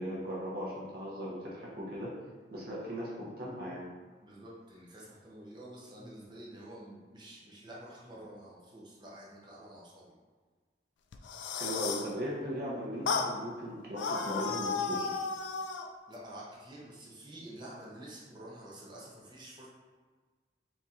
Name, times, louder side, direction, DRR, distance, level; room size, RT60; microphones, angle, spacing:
voice 1, 0.0-2.1 2.5-3.8 11.6-15.3, equal, 55° right, -6 dB, 0.9 m, -38 dB
voice 2, 4.2-10.1 16.1-19.7, right 1 dB, 25° right, -5 dB, 0.7 m, -49 dB
sound 1, 11.1-12.1 13.1-13.3 14.0-15.9, left 5 dB, 85° left, 0.4 m, -33 dB
4.2 x 2.8 x 3.6 m, 1.4 s
head